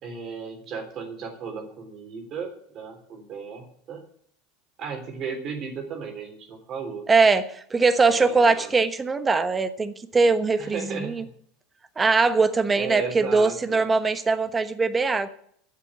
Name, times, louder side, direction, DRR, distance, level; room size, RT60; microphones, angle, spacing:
voice 1, 0.0-4.0 4.8-7.0 8.1-8.7 10.6-11.3 12.7-13.8, right 6 dB, 45° right, 5 dB, 3.5 m, -35 dB
voice 2, 7.1-11.2 12.0-15.3, right 4 dB, 20° right, 11 dB, 1.2 m, -21 dB
10.5 x 7.6 x 9.6 m, 0.66 s
hypercardioid pair, 80°, 0 cm